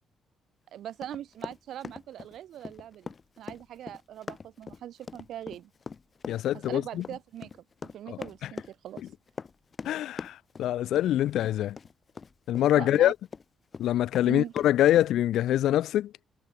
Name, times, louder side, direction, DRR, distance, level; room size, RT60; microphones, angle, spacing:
voice 1, 0.7-5.7 6.5-7.5 7.8-9.0 12.7-13.1 14.2-14.5, right 11 dB, 75° right, 1.7 m, -41 dB
Run, 1.0-13.4 13.7-15.1, left 5 dB, 40° left, 0.6 m, -42 dB
voice 2, 6.3-7.0 8.1-8.2 9.8-11.8 12.5-13.1 13.8-16.1, left 12 dB, 80° left, 0.4 m, -24 dB
cardioid pair, 90°, 0 cm